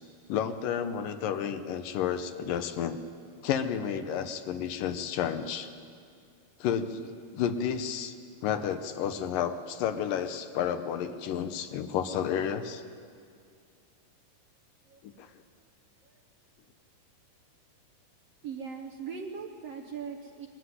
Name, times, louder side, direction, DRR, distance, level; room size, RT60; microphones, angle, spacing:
voice 1, 0.3-3.0 3.4-5.7 6.6-8.1 8.4-12.8 15.0-15.3, left 8 dB, 75° left, 9 dB, 2.5 m, -31 dB
voice 2, 14.8-15.4 16.0-16.2 18.4-20.5, right 6 dB, 65° right, 3 dB, 1.6 m, -40 dB
22.0 x 14.0 x 9.7 m, 2.2 s
omnidirectional pair, 4.0 m